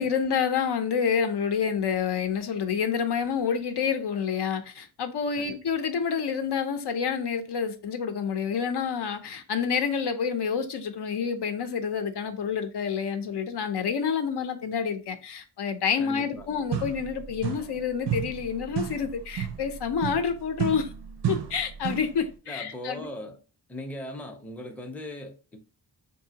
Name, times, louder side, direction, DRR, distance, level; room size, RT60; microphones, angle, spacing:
voice 1, 0.0-20.9 21.3-23.1, left 6 dB, 80° left, 0.6 m, -28 dB
voice 2, 16.0-16.5 22.5-23.4 23.7-25.6, left 1 dB, 5° left, 0.5 m, -39 dB
sound 1, 16.3-16.4 16.7-17.8 18.1-22.2, right 9 dB, 85° right, 0.6 m, -32 dB
4.0 x 2.7 x 2.7 m
wide cardioid pair, 175°, 40 cm